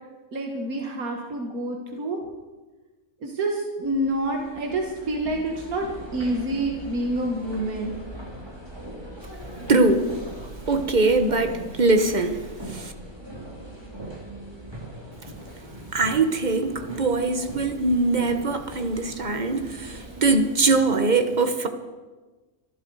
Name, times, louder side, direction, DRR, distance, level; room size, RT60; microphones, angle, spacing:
voice 1, 0.3-2.2 3.2-5.9 6.1-7.9, right 1 dB, 85° right, 2.0 m, -27 dB
sound 1, 3.8-20.5, right 1 dB, 15° right, 3.4 m, -40 dB
voice 2, 9.7-10.1 10.7-12.4 12.7-12.9 15.9-21.7, right 3 dB, 35° right, 1.3 m, -22 dB
25.5 x 11.5 x 4.8 m
omnidirectional pair, 1.5 m